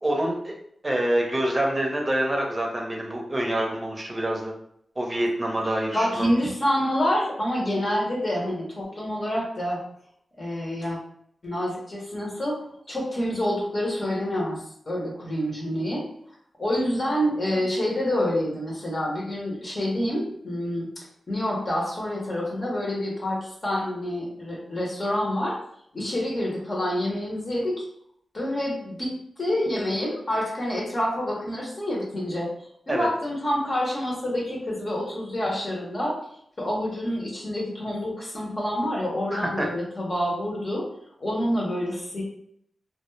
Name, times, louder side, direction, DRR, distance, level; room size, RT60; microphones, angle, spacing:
voice 1, 0.0-0.5 0.8-4.5 5.0-6.3 32.9-33.1 39.3-39.7, right 1 dB, 25° right, 0 dB, 0.6 m, -26 dB
voice 2, 5.9-9.8 10.4-11.0 11.4-12.6 12.9-16.0 16.6-20.9 21.3-25.6 25.9-27.8 28.3-29.1 29.4-32.5 32.9-36.2 36.6-40.8 41.2-42.2, left 1 dB, 45° left, -3 dB, 0.8 m, -27 dB
2.2 x 2.0 x 3.1 m, 0.69 s
cardioid pair, 55°, 0 cm